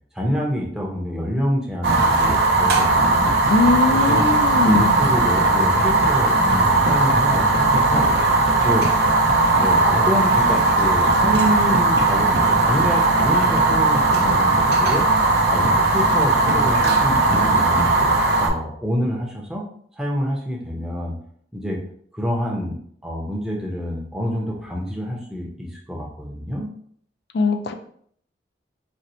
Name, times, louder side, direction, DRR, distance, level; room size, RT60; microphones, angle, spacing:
voice 1, 0.1-3.4 3.9-4.3 4.6-8.1 8.6-8.9 9.5-15.1 15.5-17.9 18.4-19.7 20.0-21.2 21.5-21.8 22.1-26.7, equal, 5° right, -3 dB, 0.6 m, -27 dB
Fire, 1.8-18.5, right 2 dB, 60° right, 0.5 m, -18 dB
voice 2, 3.5-5.0 27.3-27.7, left 3 dB, 65° left, 6 dB, 0.4 m, -20 dB
4.2 x 2.1 x 2.6 m, 0.62 s
head